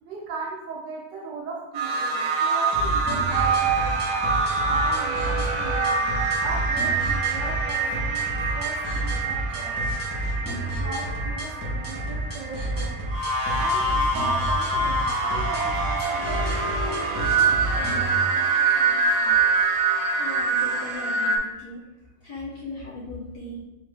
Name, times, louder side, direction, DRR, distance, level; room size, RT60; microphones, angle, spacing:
voice 1, 0.0-3.9 4.6-8.3 8.5-9.8 10.4-13.0 13.5-19.4, right 3 dB, 70° right, -3 dB, 1.2 m, -38 dB
sound 1, 1.7-21.4, right 3 dB, 85° right, 1.6 m, -25 dB
sound 2, 2.7-18.1, right 1 dB, 20° left, 0.5 m, -31 dB
voice 2, 20.2-21.8 22.2-23.6, left 2 dB, 65° left, -4 dB, 1.1 m, -38 dB
3.6 x 3.5 x 3.3 m, 1.0 s
omnidirectional pair, 2.4 m